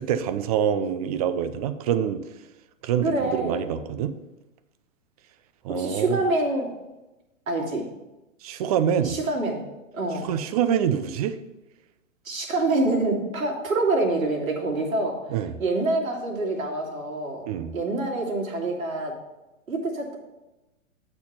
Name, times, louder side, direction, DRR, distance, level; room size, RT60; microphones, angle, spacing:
voice 1, 0.0-2.2 2.8-4.1 5.6-6.2 8.4-9.2 10.2-11.4 15.3-15.5 17.5-17.8, right 9 dB, 30° right, 12 dB, 0.4 m, -25 dB
voice 2, 3.0-3.7 5.7-6.7 7.5-7.8 9.0-9.6 9.9-10.3 12.2-15.2 15.6-17.4 17.7-19.2 19.7-20.2, right 2 dB, 80° right, -2 dB, 2.3 m, -26 dB
8.1 x 4.5 x 5.6 m, 1.0 s
hypercardioid pair, 120°, 40 cm